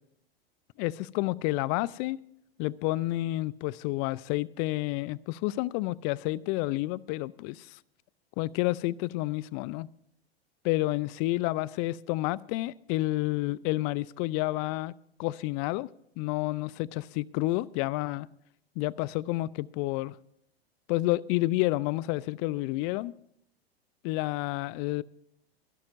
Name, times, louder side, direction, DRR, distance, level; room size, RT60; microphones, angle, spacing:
voice 1, 0.8-2.2 2.6-7.8 8.4-9.9 10.6-14.9 15.2-15.9 16.2-18.3 18.8-20.2 20.9-23.1 24.0-25.0, left 19 dB, 40° left, 22 dB, 0.5 m, -30 dB
26.0 x 11.5 x 2.6 m, 0.73 s
figure-of-eight pair, 95°, 31 cm